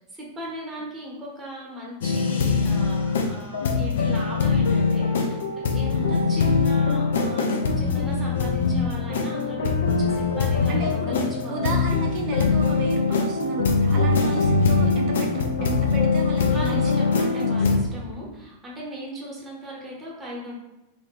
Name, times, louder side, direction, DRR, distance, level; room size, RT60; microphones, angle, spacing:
voice 1, 0.1-12.0 16.4-20.5, equal, 10° right, -4 dB, 1.2 m, -38 dB
sound 1, 2.0-17.8, left 4 dB, 60° left, 0.4 m, -22 dB
voice 2, 10.7-11.2 11.5-18.4, right 4 dB, 40° right, 1 dB, 0.5 m, -33 dB
2.8 x 2.7 x 3.1 m, 1.0 s
figure-of-eight pair, 90°, 0 cm